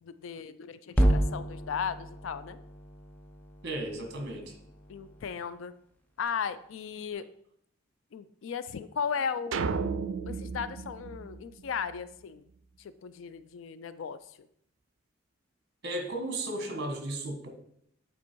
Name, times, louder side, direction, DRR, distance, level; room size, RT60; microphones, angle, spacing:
voice 1, 0.0-2.6 4.9-5.7 6.2-7.3 8.1-9.9 10.3-12.4 12.8-14.2, left 6 dB, 75° left, 14 dB, 0.4 m, -36 dB
sound 1, 0.9-5.3, right 1 dB, 10° left, 0.7 m, -31 dB
voice 2, 3.6-4.5 15.8-17.5, right 1 dB, 55° right, 4 dB, 1.6 m, -35 dB
sound 2, 9.5-12.0, right 5 dB, 75° right, 0.5 m, -34 dB
8.6 x 4.5 x 4.5 m, 0.70 s
head